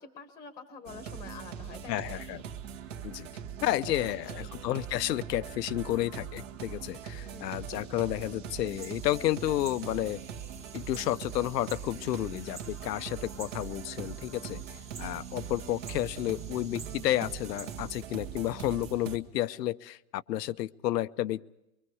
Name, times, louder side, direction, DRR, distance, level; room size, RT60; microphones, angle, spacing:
voice 1, 0.0-2.1 3.6-4.5 7.1-7.7, left 5 dB, 5° left, 7 dB, 1.2 m, -47 dB
sound 1, 0.9-19.2, right 8 dB, 50° right, 1.9 m, -42 dB
voice 2, 1.9-2.4 3.0-3.3 3.6-10.2 10.7-21.4, left 14 dB, 70° left, 15 dB, 0.8 m, -31 dB
sound 2, 8.7-18.0, right 5 dB, 15° right, 1.6 m, -50 dB
24.0 x 24.0 x 4.8 m, 0.90 s
supercardioid pair, 175°, 50 cm